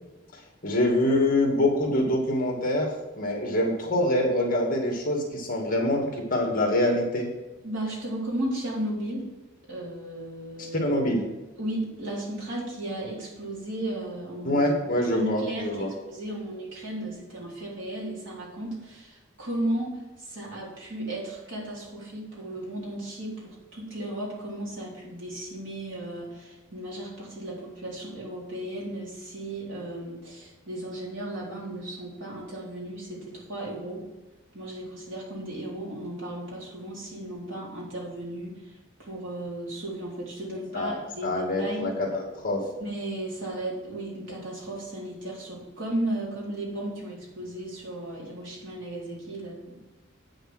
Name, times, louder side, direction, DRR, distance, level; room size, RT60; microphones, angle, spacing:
voice 1, 0.3-2.9 3.2-7.3 10.6-11.3 14.4-15.9 40.7-42.6, left 1 dB, 40° left, 1 dB, 2.2 m, -25 dB
voice 2, 7.6-9.3 9.7-10.8 11.6-14.7 15.1-19.9 20.2-34.0 34.5-38.7 39.0-41.9 42.8-49.8, right 1 dB, 60° right, -5 dB, 4.0 m, -35 dB
8.9 x 6.5 x 6.3 m, 1.1 s
head